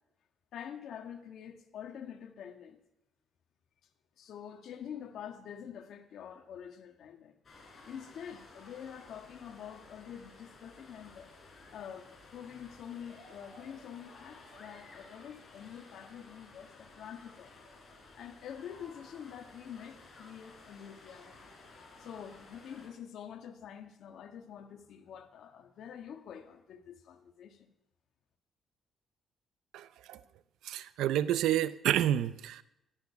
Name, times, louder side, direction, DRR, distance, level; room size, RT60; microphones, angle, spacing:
voice 1, 0.5-2.8 4.2-7.3 7.7-11.3 11.6-17.5 18.1-21.5 22.0-27.7, left 8 dB, 75° left, 1.5 m, -46 dB
sound 1, 7.4-22.9, left 3 dB, 40° left, 4.7 m, -55 dB
voice 2, 29.7-30.2 30.6-32.6, right 12 dB, 85° right, 0.6 m, -29 dB
13.0 x 13.0 x 5.8 m
cardioid pair, 90°, 0 cm